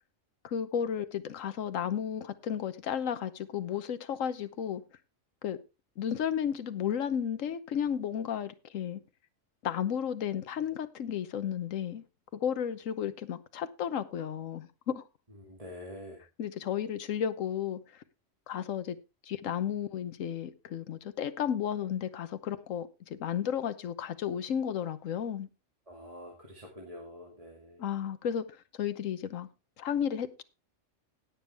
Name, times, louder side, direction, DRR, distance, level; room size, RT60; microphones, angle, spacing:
voice 1, 0.4-4.8 5.4-5.6 6.0-9.0 9.6-12.0 12.3-15.0 16.4-17.8 18.5-19.0 19.3-25.5 27.8-29.5 29.8-30.4, left 8 dB, 80° left, 1.3 m, -33 dB
voice 2, 15.4-16.2 25.9-27.9, left 1 dB, 25° right, 2.3 m, -46 dB
18.0 x 7.2 x 3.4 m
omnidirectional pair, 1.3 m